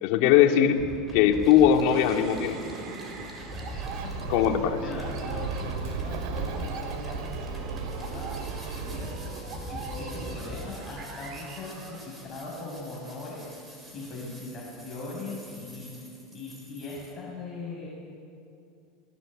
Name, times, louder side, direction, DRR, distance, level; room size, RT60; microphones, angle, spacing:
voice 1, 0.0-0.8 1.1-2.6 4.3-4.8, left 9 dB, 60° left, 4 dB, 2.4 m, -20 dB
sound 1, 0.7-17.1, equal, 10° right, 6.5 m, -43 dB
sound 2, 1.9-12.5, right 4 dB, 40° right, 4.4 m, -41 dB
Bird, 3.7-9.2, right 6 dB, 70° right, 2.6 m, -36 dB
voice 2, 4.8-8.5 8.7-9.1 9.7-13.5 13.9-17.9, left 2 dB, 25° left, -4 dB, 6.5 m, -40 dB
28.0 x 20.5 x 8.9 m, 2.6 s
supercardioid pair, 140°, 0 cm